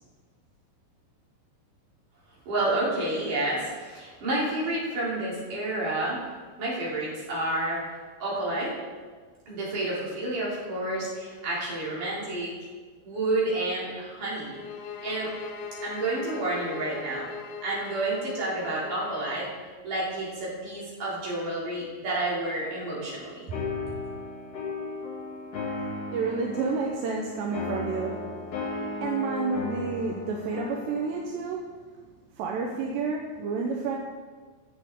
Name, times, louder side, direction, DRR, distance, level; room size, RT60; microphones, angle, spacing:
voice 1, 2.5-6.2 6.6-7.8 8.2-8.7 9.5-12.5 13.0-14.6 15.0-15.3 15.8-17.3 17.6-19.5 19.8-23.6, right 2 dB, 50° right, -7 dB, 4.8 m, -30 dB
sound 1, 14.4-19.3, left 5 dB, 90° left, 3.2 m, -40 dB
sound 2, 23.5-31.3, left 3 dB, 50° left, 4.1 m, -35 dB
voice 2, 26.1-28.4 29.0-31.9 32.4-34.0, right 4 dB, 80° right, 0 dB, 3.0 m, -30 dB
21.0 x 7.3 x 3.7 m, 1.5 s
omnidirectional pair, 5.1 m